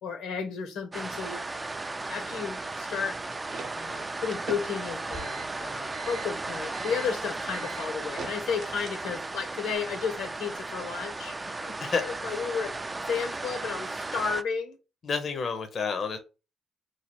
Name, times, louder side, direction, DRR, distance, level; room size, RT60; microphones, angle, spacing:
voice 1, 0.0-1.4 2.1-3.2 3.8-14.8, left 6 dB, 90° left, 0.9 m, -33 dB
sound 1, 0.9-14.4, right 2 dB, 20° right, 0.3 m, -36 dB
sound 2, 3.1-9.3, right 5 dB, 65° right, 0.7 m, -43 dB
voice 2, 15.0-16.2, left 5 dB, 50° left, 0.6 m, -29 dB
3.1 x 2.4 x 4.2 m
cardioid pair, 90°, 0 cm